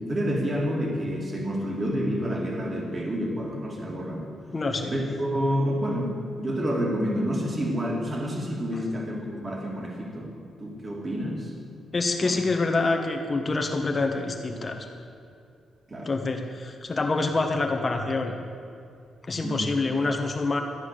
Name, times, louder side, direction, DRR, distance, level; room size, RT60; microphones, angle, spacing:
voice 1, 0.0-4.3 4.9-10.3 10.6-11.5 12.2-12.4 15.9-16.1 19.4-19.7, equal, 25° right, -1 dB, 2.3 m, -29 dB
voice 2, 4.5-4.9 11.9-14.9 16.0-18.3 19.3-20.6, left 3 dB, 25° left, 3 dB, 1.4 m, -26 dB
13.5 x 9.7 x 6.7 m, 2.4 s
cardioid pair, 135°, 0 cm